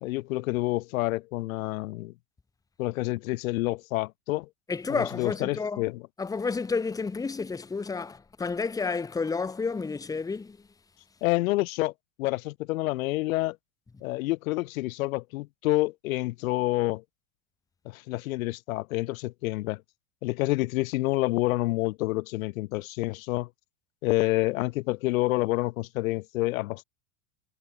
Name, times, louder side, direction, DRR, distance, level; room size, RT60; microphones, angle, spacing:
voice 1, 0.0-2.1 2.8-4.5 4.9-6.0 11.2-11.9 12.2-13.6 14.0-17.0 17.8-19.8 20.2-23.5 24.0-26.8, left 20 dB, 80° left, 1.3 m, -28 dB
voice 2, 4.7-5.8 6.2-10.6, left 4 dB, 10° left, 1.2 m, -30 dB
supercardioid pair, 145°, 41 cm